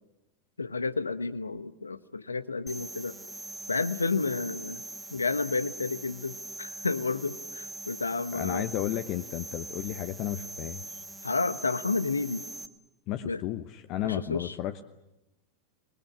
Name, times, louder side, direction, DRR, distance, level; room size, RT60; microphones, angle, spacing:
voice 1, 0.6-3.2 3.7-4.8 5.1-8.7 11.2-12.4 13.2-13.4 14.0-14.5, left 4 dB, 80° left, 14 dB, 1.1 m, -31 dB
sound 1, 2.7-12.7, right 2 dB, ahead, 1.5 m, -42 dB
voice 2, 8.3-11.0 13.1-14.8, left 13 dB, 40° left, 11 dB, 0.8 m, -33 dB
26.5 x 21.0 x 8.6 m, 0.97 s
figure-of-eight pair, 90°, 0 cm